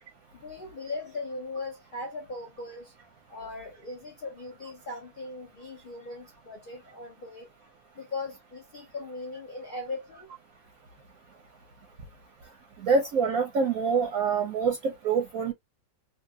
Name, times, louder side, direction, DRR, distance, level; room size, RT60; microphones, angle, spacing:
voice 1, 0.3-2.9 3.3-7.5 8.0-10.3, left 2 dB, 70° left, 0.4 m, -39 dB
voice 2, 12.8-15.5, right 5 dB, 65° right, 0.9 m, -25 dB
2.8 x 2.5 x 2.3 m
omnidirectional pair, 1.8 m